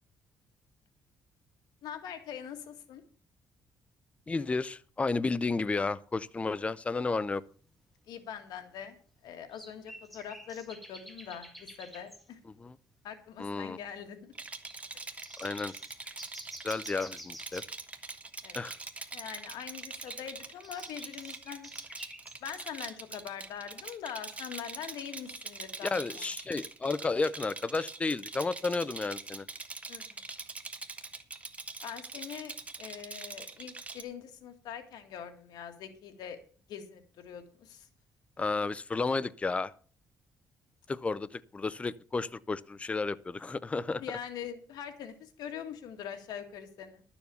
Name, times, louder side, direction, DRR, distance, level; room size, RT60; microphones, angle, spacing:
voice 1, 1.8-3.0 8.1-9.0 9.2-12.4 13.0-14.3 18.4-18.7 19.1-21.7 22.4-26.2 29.9-30.2 31.8-36.4 36.7-37.9 44.0-47.0, left 8 dB, 85° left, 1.8 m, -43 dB
voice 2, 4.3-7.4 12.6-12.8 13.4-13.8 15.4-15.7 16.6-17.6 18.5-18.8 25.9-29.5 38.4-39.7 40.9-44.0, left 3 dB, 20° left, 0.5 m, -32 dB
sound 1, 7.3-7.4 8.1-8.2 9.5-12.3 12.9-13.0 13.3-13.4 13.7-14.1 14.6-14.8 15.2-17.8 19.9-22.4, equal, ahead, 1.9 m, -49 dB
Rattle, 14.3-34.0, right 3 dB, 20° right, 1.3 m, -43 dB
12.0 x 7.1 x 6.9 m
cardioid pair, 125°, 7 cm